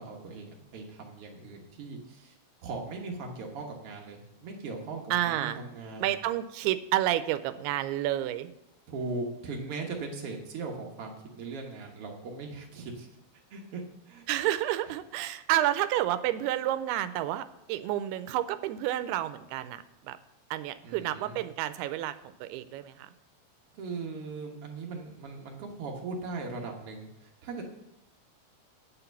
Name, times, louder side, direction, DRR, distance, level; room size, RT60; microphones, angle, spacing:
voice 1, 0.0-2.4 2.6-6.2 8.9-13.1 13.5-13.8 14.1-14.3 20.8-21.4 23.8-27.6, right 3 dB, 70° right, 1 dB, 1.4 m, -39 dB
voice 2, 5.1-5.6 6.0-8.5 14.3-20.2 20.5-22.2 22.4-23.1, right 13 dB, 85° right, 12 dB, 2.5 m, -30 dB
9.5 x 5.9 x 6.9 m, 0.86 s
omnidirectional pair, 4.5 m